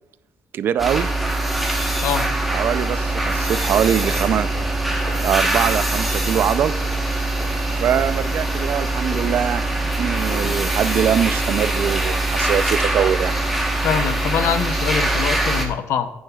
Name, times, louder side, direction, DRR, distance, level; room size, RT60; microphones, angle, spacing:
voice 1, 0.5-1.1 2.5-4.5 5.2-6.8 7.8-9.6 10.0-13.4, right 9 dB, 50° right, 14 dB, 0.4 m, -22 dB
sound 1, 0.8-15.6, right 2 dB, ahead, 1.1 m, -22 dB
sound 2, 4.0-5.4 5.6-5.9 6.2-7.1 7.4-7.6 8.0-10.7, left 2 dB, 40° left, 2.6 m, -38 dB
voice 2, 13.8-16.1, left 8 dB, 75° left, 10 dB, 0.7 m, -23 dB
15.5 x 9.4 x 2.3 m, 0.96 s
cardioid pair, 175°, 5 cm